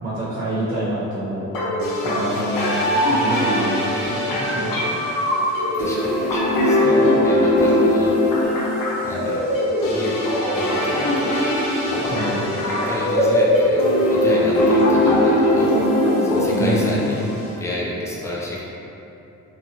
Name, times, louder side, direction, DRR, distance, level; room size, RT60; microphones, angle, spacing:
voice 1, 0.0-1.5 2.0-2.8 3.1-4.8 12.1-12.4 16.6-17.2, right 1 dB, 35° right, -12 dB, 1.0 m, -26 dB
sound 1, 1.5-17.5, left 1 dB, 90° left, 0.7 m, -20 dB
voice 2, 5.8-8.1 9.0-9.5 9.9-10.2 10.5-11.4 11.8-13.8 14.1-15.7 16.2-17.3 17.6-18.6, left 1 dB, 10° left, -5 dB, 0.5 m, -31 dB
3.0 x 2.2 x 2.9 m, 2.9 s
cardioid pair, 105°, 32 cm